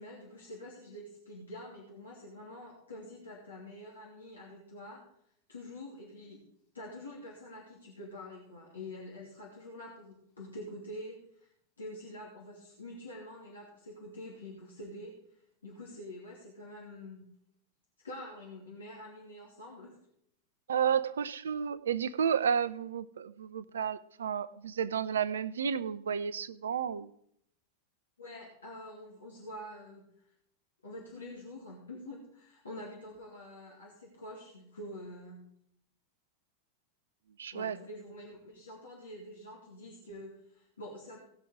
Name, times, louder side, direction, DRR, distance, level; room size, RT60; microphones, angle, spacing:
voice 1, 0.0-5.0 5.5-6.4 6.7-11.5 11.8-17.3 18.0-19.9 28.2-30.3 30.8-35.4 37.5-41.2, left 1 dB, 75° left, -4 dB, 2.8 m, -46 dB
voice 2, 20.7-27.1 37.4-37.8, right 7 dB, 65° right, 17 dB, 0.6 m, -32 dB
18.0 x 6.2 x 4.8 m, 0.71 s
figure-of-eight pair, 90°, 0 cm